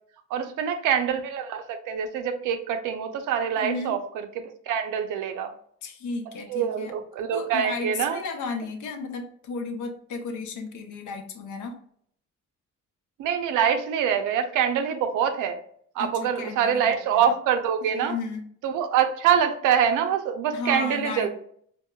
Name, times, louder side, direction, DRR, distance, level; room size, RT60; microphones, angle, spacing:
voice 1, 0.3-4.0 4.4-5.5 6.5-8.2 13.2-15.6 16.0-18.1 18.6-21.3, right 8 dB, 90° right, 7 dB, 0.5 m, -25 dB
voice 2, 3.6-4.0 5.8-6.9 7.3-11.8 16.0-17.4 17.8-18.4 20.5-21.3, left 4 dB, 75° left, 4 dB, 0.7 m, -34 dB
4.5 x 2.0 x 2.2 m, 0.62 s
cardioid pair, 90°, 30 cm